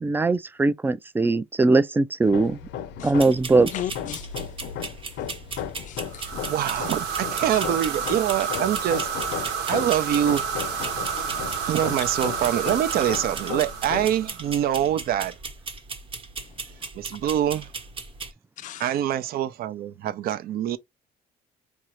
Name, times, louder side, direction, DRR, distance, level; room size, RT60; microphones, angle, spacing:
voice 1, 0.0-2.6 3.0-3.7, right 3 dB, 10° right, 0.3 m, -20 dB
Hammer, 2.2-14.3, left 9 dB, 85° left, 0.7 m, -36 dB
sound 1, 3.2-18.3, right 4 dB, 30° right, 1.0 m, -38 dB
voice 2, 3.7-4.3 5.8-6.4 11.1-11.7 18.6-18.9, left 12 dB, 50° left, 0.4 m, -36 dB
sound 2, 6.1-14.6, right 6 dB, 85° right, 1.1 m, -30 dB
voice 3, 6.5-9.1 9.7-10.9 11.6-15.3 16.9-17.7 18.8-20.8, right 11 dB, 65° right, 0.6 m, -25 dB
4.8 x 2.7 x 3.0 m
cardioid pair, 110°, 17 cm